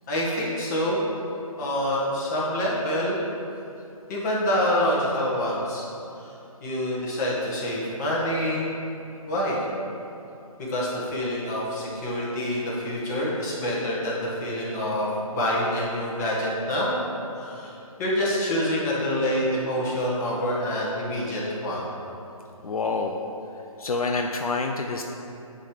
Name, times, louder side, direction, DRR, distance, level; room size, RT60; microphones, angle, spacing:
voice 1, 0.1-1.0 1.6-3.2 4.1-5.9 6.2-6.3 6.6-8.7 9.2-9.6 10.6-17.0 17.4-21.8, equal, 30° left, -6 dB, 1.7 m, -26 dB
voice 2, 22.6-23.2 23.8-25.0, left 3 dB, 75° left, 3 dB, 0.6 m, -27 dB
9.7 x 3.3 x 5.2 m, 2.8 s
figure-of-eight pair, 150°, 18 cm